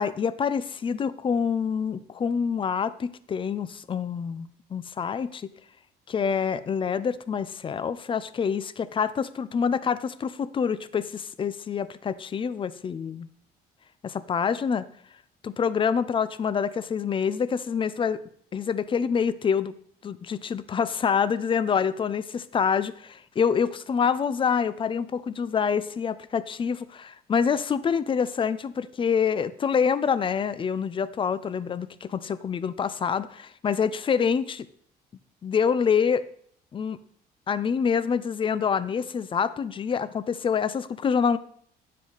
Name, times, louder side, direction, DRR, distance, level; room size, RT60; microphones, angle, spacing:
voice 1, 0.0-5.5 6.1-13.3 14.0-14.9 15.4-18.2 18.5-19.8 20.0-34.7 35.4-36.2 36.7-37.0 37.5-41.4, left 6 dB, 30° left, 15 dB, 0.5 m, -26 dB
9.4 x 7.5 x 4.0 m, 0.62 s
cardioid pair, 110°, 17 cm